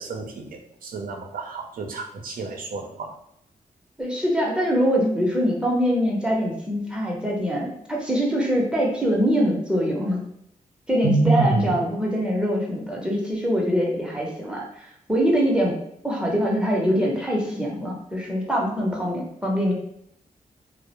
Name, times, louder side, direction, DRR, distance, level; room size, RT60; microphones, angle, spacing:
voice 1, 0.0-3.1 11.0-11.7, right 3 dB, 75° right, 2 dB, 0.5 m, -27 dB
voice 2, 4.0-10.2 10.9-15.8 16.0-19.7, equal, 5° right, -3 dB, 0.6 m, -23 dB
2.3 x 2.0 x 2.8 m, 0.74 s
cardioid pair, 70°, 15 cm